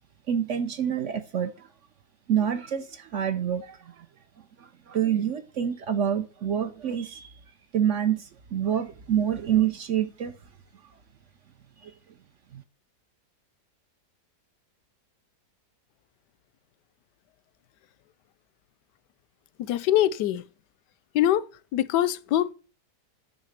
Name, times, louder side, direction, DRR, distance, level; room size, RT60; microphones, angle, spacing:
voice 1, 0.3-1.7 2.3-4.1 4.6-7.3 7.7-10.3 11.8-11.9 12.5-12.6, right 9 dB, 60° right, 0.9 m, -27 dB
voice 2, 19.6-20.4 21.1-21.4 21.7-22.5, left 12 dB, 85° left, 1.2 m, -23 dB
9.2 x 3.6 x 6.4 m
omnidirectional pair, 1.8 m